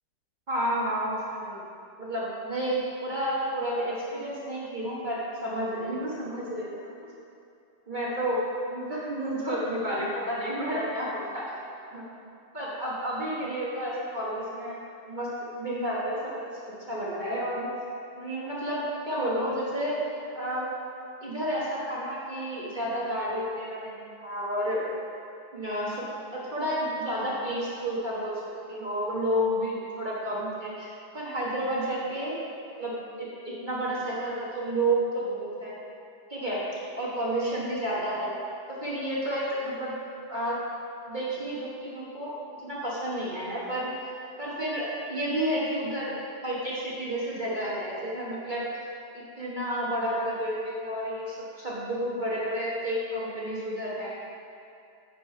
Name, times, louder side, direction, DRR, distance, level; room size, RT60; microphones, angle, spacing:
voice 1, 0.5-1.6 2.0-6.9 7.9-8.4 8.7-11.6 11.9-12.1 12.5-14.8 15.1-15.3 15.6-16.2 16.9-17.7 18.2-20.0 20.3-20.7 21.2-24.8 25.5-26.1 26.3-28.4 28.7-32.4 32.8-35.7 36.3-38.3 38.7-39.9 40.3-40.6 41.1-42.3 42.6-43.9 44.4-46.1 46.4-48.7 49.1-54.1, right 1 dB, 30° right, -7 dB, 1.0 m, -31 dB
9.6 x 5.4 x 4.4 m, 2.5 s
omnidirectional pair, 2.4 m